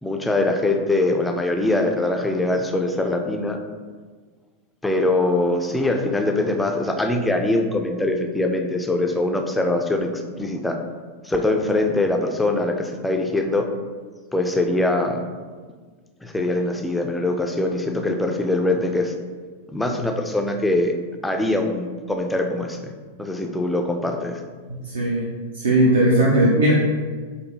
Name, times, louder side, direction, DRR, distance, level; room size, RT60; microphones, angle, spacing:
voice 1, 0.0-3.6 4.8-10.1 10.4-10.8 11.2-13.7 14.3-15.2 16.2-19.1 19.7-20.9 21.2-22.9 23.2-24.4, left 2 dB, 5° left, 3 dB, 0.4 m, -22 dB
voice 2, 24.7-25.3 25.5-26.7, right 1 dB, 65° right, -4 dB, 0.6 m, -18 dB
4.1 x 2.6 x 3.1 m, 1.5 s
figure-of-eight pair, 90°, 0 cm